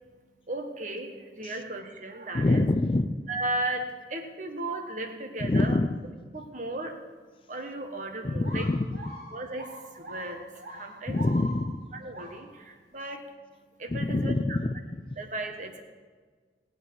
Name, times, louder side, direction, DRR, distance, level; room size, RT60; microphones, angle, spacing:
voice 1, 0.5-2.6 3.3-5.8 6.3-7.0 7.5-8.7 9.3-11.2 11.9-13.3 13.8-14.6 15.2-15.8, right 2 dB, 45° right, 5 dB, 1.3 m, -35 dB
voice 2, 2.3-3.2 5.4-6.0 8.2-8.9 11.1-11.9 13.9-15.2, left 2 dB, 30° left, 10 dB, 0.4 m, -26 dB
sound 1, 8.4-11.8 12.1-12.4, right 1 dB, 70° right, 3.1 m, -43 dB
19.0 x 8.3 x 4.7 m, 1.5 s
head